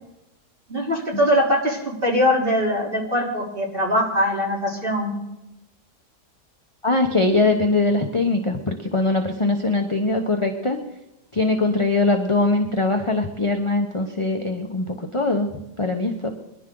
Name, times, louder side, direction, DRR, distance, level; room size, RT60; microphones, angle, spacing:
voice 1, 0.7-5.1, equal, 30° right, -3 dB, 3.9 m, -22 dB
voice 2, 6.8-10.8 11.3-16.3, left 2 dB, 25° left, 3 dB, 0.9 m, -22 dB
23.0 x 11.0 x 3.9 m, 0.91 s
omnidirectional pair, 1.8 m